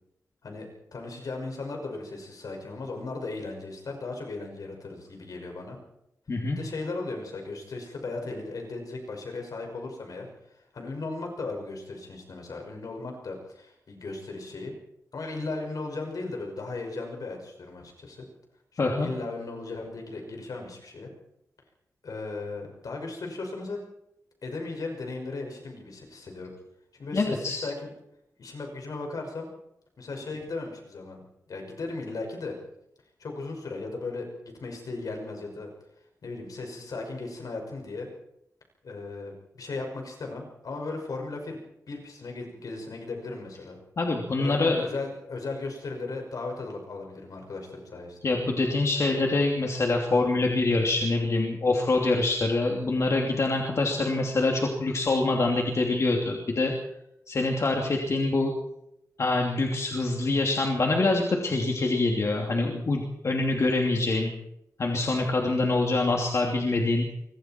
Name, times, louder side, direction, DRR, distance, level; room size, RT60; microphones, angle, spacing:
voice 1, 0.4-5.8 6.5-14.7 15.1-18.2 18.7-21.1 22.0-23.8 24.4-26.5 26.9-27.9 28.4-29.5 30.0-32.6 33.2-35.7 36.2-38.1 38.8-41.6 41.9-43.8 44.4-48.4, left 3 dB, 70° left, 2 dB, 6.0 m, -36 dB
voice 2, 18.8-19.1 27.1-27.6 44.0-44.8 48.2-56.7 57.3-58.5 59.2-64.3 64.8-67.1, left 2 dB, 50° left, 0 dB, 2.8 m, -25 dB
26.5 x 23.5 x 4.6 m, 0.83 s
wide cardioid pair, 130°, 6 cm